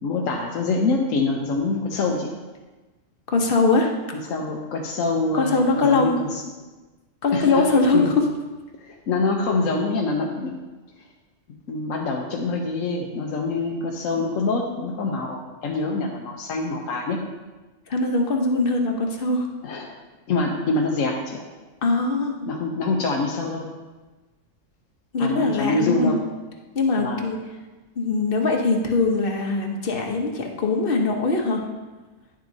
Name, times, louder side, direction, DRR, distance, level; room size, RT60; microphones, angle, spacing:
voice 1, 0.0-2.4 4.2-6.4 7.3-7.7 7.9-8.1 8.8-10.5 11.7-17.2 19.6-19.9 20.3-21.5 22.5-23.7 25.2-26.2 27.0-27.2, left 3 dB, 80° left, 0 dB, 1.2 m, -25 dB
voice 2, 3.3-3.9 5.3-6.2 7.2-8.1 17.9-19.5 21.8-22.5 25.1-26.2 26.7-27.4 28.0-31.6, left 3 dB, 45° left, 2 dB, 1.1 m, -21 dB
10.5 x 7.5 x 2.7 m, 1.2 s
omnidirectional pair, 1.4 m